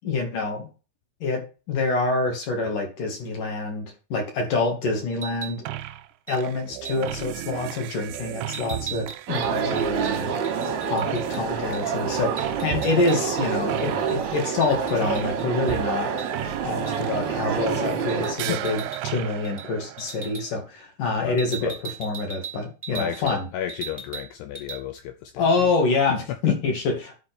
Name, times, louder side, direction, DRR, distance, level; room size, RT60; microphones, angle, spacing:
voice 1, 0.0-0.7 1.2-1.4 1.7-5.6 6.3-10.3 10.9-16.1 16.6-21.7 22.0-23.4 25.4-27.2, left 3 dB, 50° left, 3.2 m, -26 dB
sound 1, 5.1-5.6 6.3-6.4 6.8-7.1 8.5-11.4 11.7-11.8 12.1-13.4 13.8-15.7 16.2-16.3 16.8-17.1 18.1-19.2 19.4-19.7 20.0-20.4 21.4-23.4 23.7-24.3 24.5-24.8, right 5 dB, 35° right, 0.4 m, -39 dB
sound 2, 5.7-6.1 6.3-18.1 18.3-20.5, right 14 dB, 80° right, 2.8 m, -35 dB
sound 3, 9.3-18.3, right 6 dB, 65° right, 1.8 m, -27 dB
voice 2, 21.2-21.8 22.9-25.7 26.3-26.4, left 11 dB, 85° left, 2.3 m, -33 dB
10.5 x 4.9 x 6.1 m
omnidirectional pair, 5.8 m